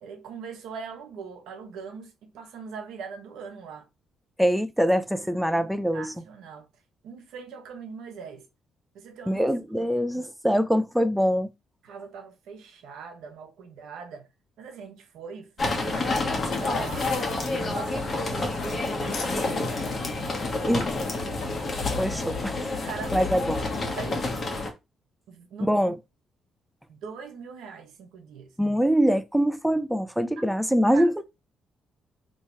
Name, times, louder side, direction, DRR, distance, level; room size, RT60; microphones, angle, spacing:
voice 1, 0.0-3.9 5.1-5.4 5.9-6.7 7.0-8.5 8.9-9.5 9.8-9.9 11.8-14.3 14.6-17.2 17.6-19.6 20.6-20.8 21.2-21.6 22.7-24.5 25.3-25.8 26.9-28.6 30.4-30.5 30.9-31.1, right 6 dB, 85° right, 0.9 m, -42 dB
voice 2, 4.4-6.1 9.3-11.5 20.6-20.9 22.0-22.7 23.1-23.6 25.7-26.0 28.6-31.2, equal, 5° right, 0.4 m, -24 dB
sound 1, 15.6-24.7, left 2 dB, 35° left, 1.2 m, -29 dB
sound 2, 16.5-22.4, left 4 dB, 65° left, 1.5 m, -41 dB
3.0 x 2.8 x 4.5 m
cardioid pair, 90°, 0 cm